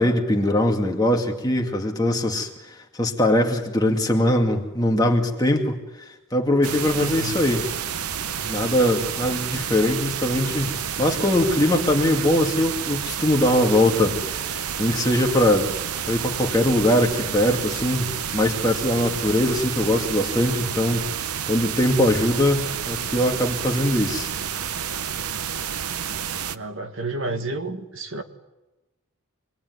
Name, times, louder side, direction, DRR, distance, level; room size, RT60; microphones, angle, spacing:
voice 1, 0.0-5.8 6.3-7.7 8.4-15.7 16.1-21.0 21.5-24.3, left 1 dB, 15° left, 1 dB, 2.3 m, -21 dB
sound 1, 6.6-26.6, right 8 dB, 90° right, 0.8 m, -30 dB
voice 2, 7.0-7.5 26.5-28.2, right 2 dB, 60° right, 6 dB, 1.8 m, -31 dB
26.0 x 20.5 x 9.6 m, 1.0 s
head